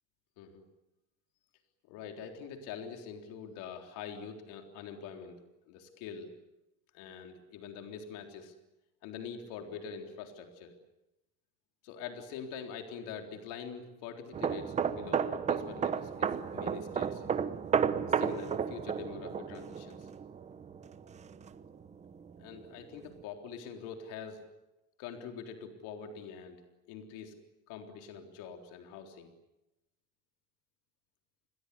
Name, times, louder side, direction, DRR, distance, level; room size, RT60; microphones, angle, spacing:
voice 1, 1.9-6.3 6.9-8.5 9.0-10.7 11.8-17.2 18.1-20.1 22.4-24.5 25.0-26.6 26.9-27.4 27.7-29.3, left 6 dB, 80° left, 4 dB, 3.8 m, -44 dB
sound 1, 14.3-21.8 22.1-22.4, right 7 dB, 20° right, 1.0 m, -33 dB
29.5 x 21.5 x 8.4 m, 0.94 s
cardioid pair, 175°, 31 cm